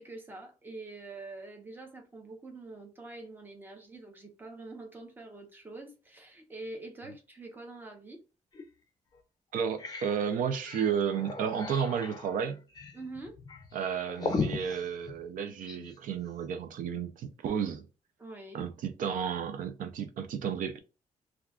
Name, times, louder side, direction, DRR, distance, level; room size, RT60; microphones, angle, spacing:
voice 1, 0.0-8.2 12.9-13.3 18.2-18.7, right 2 dB, 15° right, 0.7 m, -45 dB
sound 1, 8.5-8.7 9.1-9.2 9.6-15.9, left 4 dB, 30° left, 0.5 m, -38 dB
voice 2, 9.5-12.6 13.7-17.8 18.5-20.8, right 7 dB, 90° right, 0.4 m, -32 dB
2.3 x 2.3 x 3.5 m
wide cardioid pair, 155°, 13 cm